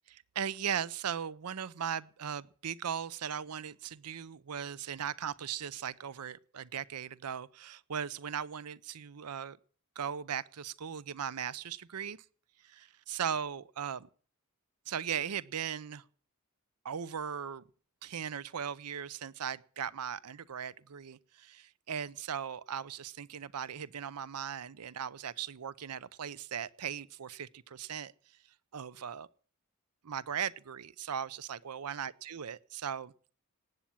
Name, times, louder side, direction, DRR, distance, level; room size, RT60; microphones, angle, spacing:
voice 1, 0.1-9.6 10.0-12.2 12.6-14.1 14.9-16.0 16.8-17.6 18.0-28.1 28.7-29.3 30.0-33.1, right 8 dB, 90° right, 0.6 m, -38 dB
18.5 x 8.6 x 7.3 m
head